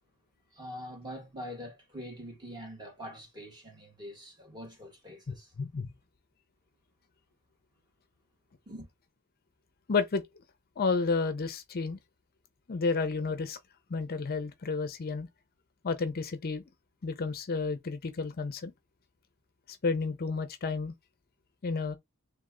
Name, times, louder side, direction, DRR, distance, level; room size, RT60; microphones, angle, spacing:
voice 1, 0.5-5.5 8.7-8.9, equal, 20° right, 1.6 m, -44 dB
voice 2, 5.3-5.9 9.9-10.2 10.8-12.0 12.7-13.6 13.9-15.3 15.8-16.6 17.0-18.7 19.7-20.9 21.6-22.0, left 4 dB, 45° left, 0.5 m, -31 dB
3.5 x 3.2 x 3.6 m
head